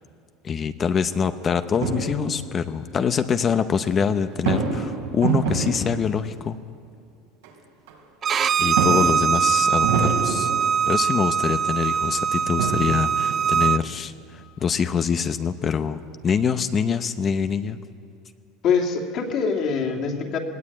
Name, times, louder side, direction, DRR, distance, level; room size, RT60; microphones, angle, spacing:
voice 1, 0.4-6.6 8.6-10.5 10.9-17.8, left 6 dB, 30° left, 10 dB, 0.8 m, -25 dB
sound 1, 1.8-2.5 4.3-6.2 7.4-7.5 7.9-8.0 8.7-11.0 12.0-12.1 12.4-14.0, right 4 dB, 90° right, 4.3 m, -27 dB
Bowed string instrument, 8.2-13.8, right 7 dB, 30° right, 0.5 m, -22 dB
voice 2, 18.6-20.4, left 5 dB, 45° left, 1 dB, 2.9 m, -24 dB
20.0 x 19.0 x 8.7 m, 2.3 s
supercardioid pair, 135°, 0 cm